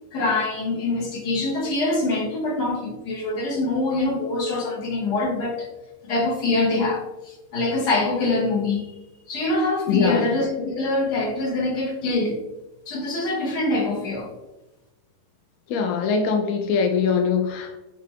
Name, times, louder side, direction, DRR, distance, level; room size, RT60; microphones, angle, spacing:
voice 1, 0.1-5.7 6.0-8.9 9.3-12.4 12.9-14.3, left 2 dB, 85° left, -2 dB, 1.7 m, -24 dB
voice 2, 9.9-10.3 15.7-17.8, left 6 dB, 70° left, 3 dB, 1.0 m, -22 dB
6.5 x 2.3 x 3.4 m, 1.0 s
omnidirectional pair, 1.7 m